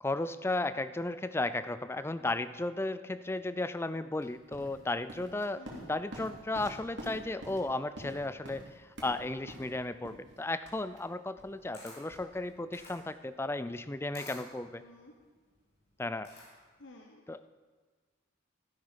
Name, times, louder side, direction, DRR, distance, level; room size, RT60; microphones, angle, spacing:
voice 1, 0.0-14.8 16.0-16.3 17.3-17.5, left 2 dB, 10° left, 13 dB, 0.3 m, -35 dB
sound 1, 4.2-13.0, right 1 dB, 55° right, 3.1 m, -48 dB
voice 2, 5.6-5.9 14.8-15.1 16.8-17.2, left 2 dB, 60° left, 2 dB, 1.0 m, -52 dB
Camera, 11.3-16.8, left 2 dB, 30° left, 3.7 m, -53 dB
13.0 x 12.0 x 5.1 m, 1.4 s
head